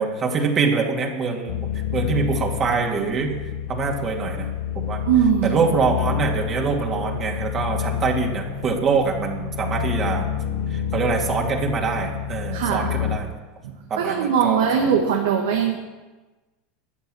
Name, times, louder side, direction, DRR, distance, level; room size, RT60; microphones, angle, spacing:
voice 1, 0.0-1.6 1.9-3.3 3.7-4.5 4.8-5.0 5.4-10.3 10.7-13.3 13.9-14.8, right 4 dB, 35° right, 0 dB, 2.5 m, -24 dB
sound 1, 1.5-13.2, left 9 dB, 70° left, 1.4 m, -28 dB
voice 2, 5.0-5.8 12.5-12.9 13.6-15.7, right 7 dB, 75° right, 1 dB, 1.6 m, -21 dB
14.0 x 9.3 x 6.3 m, 1.2 s
hypercardioid pair, 85°, 0 cm